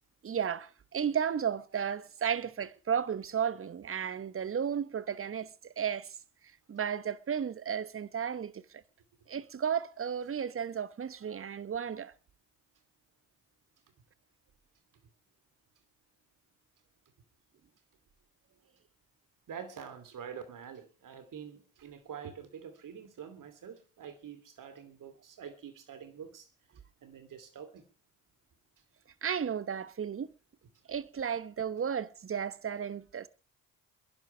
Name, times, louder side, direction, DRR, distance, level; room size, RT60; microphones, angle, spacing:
voice 1, 0.2-6.1 6.7-8.6 9.3-12.1 29.2-30.3 30.9-33.3, right 8 dB, 35° right, 1.0 m, -33 dB
voice 2, 19.5-26.5 27.0-27.9, right 7 dB, 60° right, 2.9 m, -46 dB
28.5 x 11.0 x 3.3 m
hypercardioid pair, 50°, 37 cm